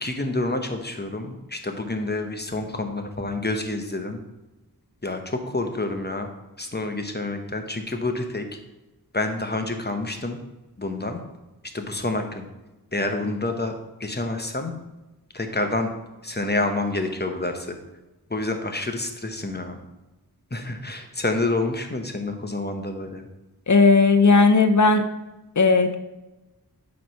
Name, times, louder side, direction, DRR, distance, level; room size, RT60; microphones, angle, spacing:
voice 1, 0.0-4.2 5.0-6.3 6.6-8.5 9.1-10.4 10.8-11.2 11.7-12.5 12.9-13.7 14.0-14.7 15.3-15.9 16.2-17.8 18.3-19.8 20.5-23.3, left 2 dB, 25° left, 5 dB, 1.0 m, -28 dB
voice 2, 23.7-25.0 25.6-26.0, left 4 dB, 50° left, 7 dB, 0.7 m, -16 dB
8.5 x 3.3 x 5.7 m, 1.0 s
wide cardioid pair, 45°, 37 cm